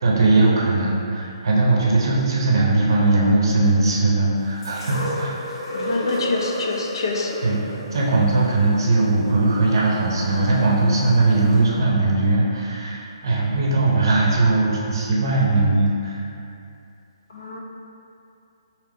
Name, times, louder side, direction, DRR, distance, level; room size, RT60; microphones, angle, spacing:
voice 1, 0.0-5.3 7.4-7.6 7.9-16.2, right 2 dB, 50° right, -4 dB, 0.7 m, -19 dB
sound 1, 4.6-10.7 11.5-11.6, left 1 dB, 85° left, 1.4 m, -32 dB
voice 2, 5.7-7.4 17.3-17.6, left 3 dB, 55° left, 0 dB, 0.5 m, -26 dB
3.4 x 2.8 x 3.7 m, 2.6 s
hypercardioid pair, 175°, 3 cm